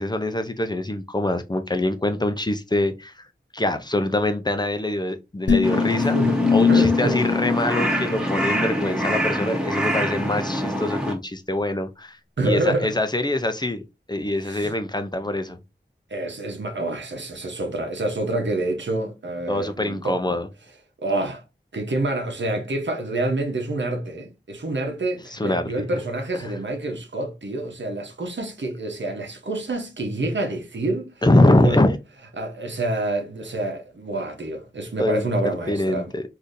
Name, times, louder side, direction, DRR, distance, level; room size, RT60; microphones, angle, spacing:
voice 1, 0.0-3.2 3.5-6.2 6.5-12.2 12.4-13.8 14.1-15.6 19.5-20.5 25.3-25.6 31.2-32.0 35.0-36.2, left 1 dB, 25° left, 0.5 m, -24 dB
sound 1, 5.5-8.8, left 6 dB, 75° left, 0.6 m, -22 dB
Crow, 5.6-11.1, equal, 5° right, 1.1 m, -25 dB
voice 2, 5.8-6.4 6.7-7.2 12.4-13.0 14.4-14.7 15.1-15.2 16.1-20.4 21.0-21.4 21.7-31.2 31.6-31.8 32.4-36.1, right 2 dB, 80° right, 0.9 m, -27 dB
3.6 x 2.7 x 2.6 m
wide cardioid pair, 45°, 19 cm